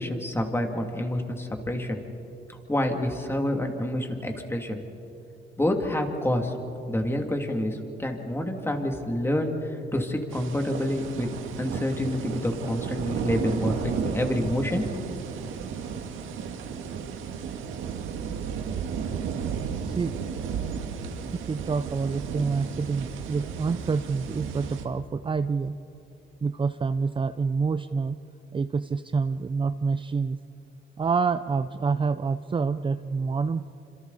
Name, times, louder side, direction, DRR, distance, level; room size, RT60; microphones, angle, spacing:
voice 1, 0.0-2.0 2.7-4.8 5.6-6.5 6.9-9.5 9.9-11.3 11.6-15.2, left 1 dB, 10° left, 3 dB, 2.6 m, -28 dB
sound 1, 10.3-24.8, right 7 dB, 85° right, 1.7 m, -33 dB
voice 2, 19.5-20.1 21.5-25.8 26.4-28.2 28.5-30.4 31.0-33.6, right 5 dB, 25° right, 10 dB, 0.5 m, -27 dB
27.0 x 26.5 x 4.1 m, 2.9 s
cardioid pair, 90°, 20 cm